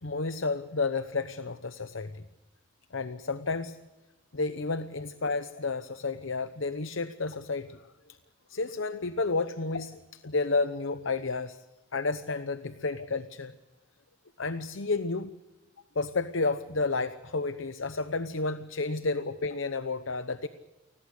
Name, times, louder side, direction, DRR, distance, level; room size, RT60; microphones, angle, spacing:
voice 1, 0.0-2.2 2.9-3.8 4.3-7.8 8.5-11.6 11.9-13.5 14.4-15.3 15.9-20.5, left 3 dB, 60° left, 11 dB, 0.9 m, -31 dB
29.0 x 20.5 x 6.5 m, 1.1 s
head